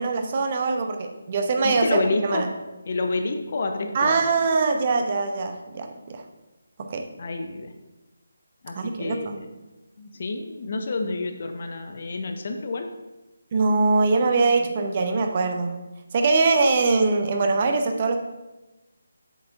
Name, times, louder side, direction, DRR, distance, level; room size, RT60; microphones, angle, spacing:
voice 1, 0.0-2.5 3.9-6.2 6.8-7.1 8.7-9.4 13.5-15.7 16.1-18.2, right 3 dB, 35° right, 5 dB, 0.8 m, -22 dB
voice 2, 1.6-2.4 2.9-4.2 7.2-7.7 8.6-9.5 10.0-12.9, left 3 dB, 45° left, 5 dB, 0.7 m, -28 dB
8.0 x 6.8 x 2.6 m, 1.1 s
figure-of-eight pair, 150°, 0 cm